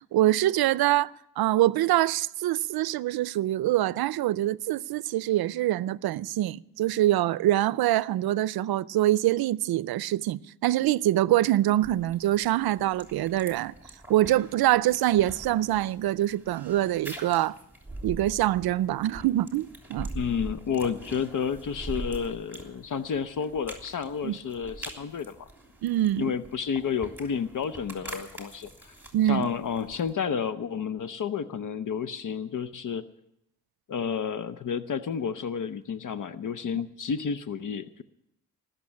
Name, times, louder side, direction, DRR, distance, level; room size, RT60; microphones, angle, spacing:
voice 1, 0.1-13.7 14.1-17.6 18.0-20.1 24.2-24.4 25.8-26.3 29.1-29.5, right 14 dB, 85° right, 0.5 m, -25 dB
sound 1, 11.8-30.1, right 2 dB, 5° right, 3.2 m, -43 dB
voice 2, 20.1-25.5 26.2-28.9 29.2-33.1 33.9-38.0, left 7 dB, 60° left, 0.8 m, -31 dB
19.5 x 6.9 x 9.8 m
cardioid pair, 100°, 36 cm